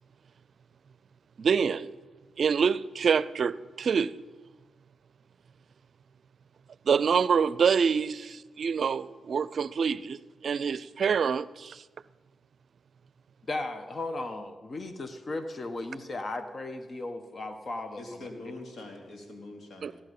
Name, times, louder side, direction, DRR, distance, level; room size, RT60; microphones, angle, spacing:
voice 1, 1.4-1.9 2.4-4.1 6.9-11.8 19.8-19.9, right 6 dB, 65° right, 0.5 m, -26 dB
voice 2, 13.5-18.2, left 2 dB, 45° left, 1.5 m, -36 dB
voice 3, 18.0-20.0, left 2 dB, 70° left, 3.0 m, -44 dB
16.5 x 11.0 x 5.5 m
supercardioid pair, 50°, 0 cm